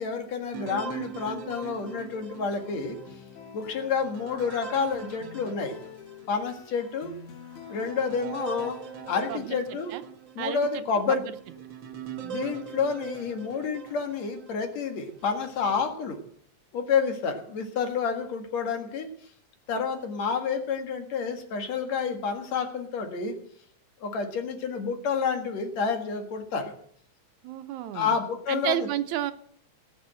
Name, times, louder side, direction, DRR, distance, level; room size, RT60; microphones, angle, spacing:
voice 1, 0.0-3.0 3.5-5.7 6.3-7.1 7.7-8.8 9.1-9.9 10.4-11.2 12.2-16.2 16.7-19.1 19.7-23.3 24.0-26.7 27.9-28.9, left 5 dB, 65° left, 5 dB, 3.0 m, -29 dB
sound 1, 0.5-6.3 6.8-6.9 7.5-14.7 15.3-15.9, right 8 dB, 55° right, 1.4 m, -42 dB
sound 2, 1.3-9.3, left 7 dB, 80° left, 2.9 m, -48 dB
voice 2, 9.3-9.6 9.9-10.0 10.4-11.4 27.4-28.1 28.5-29.3, right 12 dB, 85° right, 11 dB, 2.2 m, -31 dB
18.5 x 7.1 x 7.6 m, 0.62 s
omnidirectional pair, 3.4 m